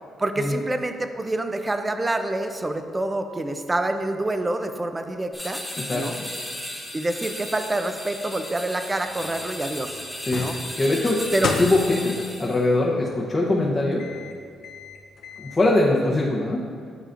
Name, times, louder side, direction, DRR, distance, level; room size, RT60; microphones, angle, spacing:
voice 1, 0.2-5.6 5.9-6.2 6.9-10.0 10.3-10.6 11.3-11.5, right 2 dB, 20° right, 8 dB, 0.5 m, -27 dB
sound 1, 5.3-12.6, left 1 dB, 5° left, 1.3 m, -35 dB
voice 2, 5.8-6.3 10.2-11.2 11.6-12.1 12.4-14.0 15.4-16.6, left 2 dB, 25° left, -4 dB, 0.8 m, -22 dB
sound 2, 8.8-15.6, left 4 dB, 75° left, 0.6 m, -36 dB
10.0 x 4.9 x 2.5 m, 2.2 s
cardioid pair, 90°, 0 cm